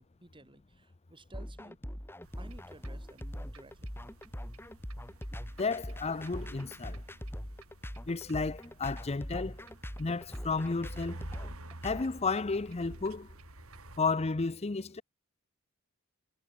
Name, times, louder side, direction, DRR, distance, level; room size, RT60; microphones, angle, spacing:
voice 1, 0.0-1.8 2.4-3.9, right 1 dB, 25° right, 3.8 m, -55 dB
sound 1, 1.3-12.0, equal, 10° left, 3.6 m, -42 dB
sound 2, 2.2-14.0, right 1 dB, 70° right, 4.1 m, -51 dB
voice 2, 5.6-7.0 8.1-9.7 10.0-11.3 11.8-13.3 14.0-15.0, left 4 dB, 30° left, 0.7 m, -32 dB
head